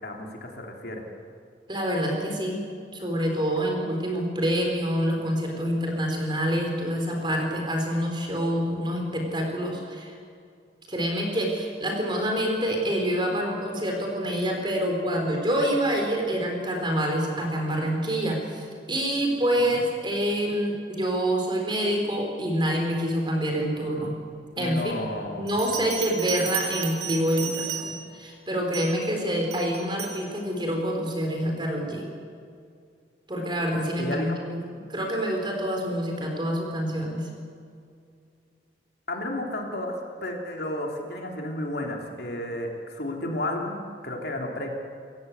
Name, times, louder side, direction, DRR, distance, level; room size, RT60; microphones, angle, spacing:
voice 1, 0.0-1.0 19.6-19.8 24.5-25.6 34.0-34.4 39.1-44.7, left 1 dB, 65° left, 1 dB, 3.3 m, -32 dB
voice 2, 1.7-2.6 2.9-10.1 10.9-24.1 24.6-24.9 25.3-27.9 28.2-32.1 33.3-34.6 34.9-37.3, equal, 25° right, 1 dB, 4.3 m, -27 dB
Bell, 25.5-28.2 28.7-29.0 29.5-30.2, right 8 dB, 65° right, 4.0 m, -33 dB
27.0 x 15.0 x 8.2 m, 2.3 s
head